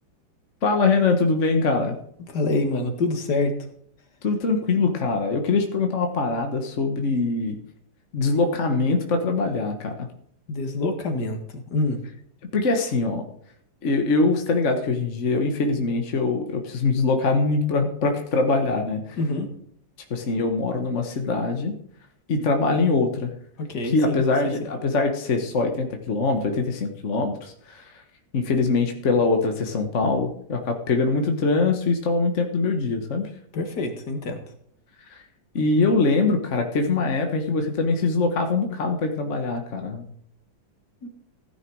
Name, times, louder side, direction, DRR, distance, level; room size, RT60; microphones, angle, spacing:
voice 1, 0.6-2.0 4.2-7.6 8.1-10.1 12.5-13.2 13.8-19.2 20.1-21.7 22.3-23.3 23.8-28.0 28.3-33.3 35.1-35.2 35.5-40.1, left 3 dB, 45° left, 4 dB, 1.4 m, -23 dB
voice 2, 2.3-3.5 10.5-12.0 19.2-19.5 23.6-24.2 33.5-34.4 41.0-41.1, left 2 dB, 60° left, 5 dB, 2.2 m, -26 dB
16.0 x 9.8 x 4.7 m, 0.66 s
omnidirectional pair, 2.1 m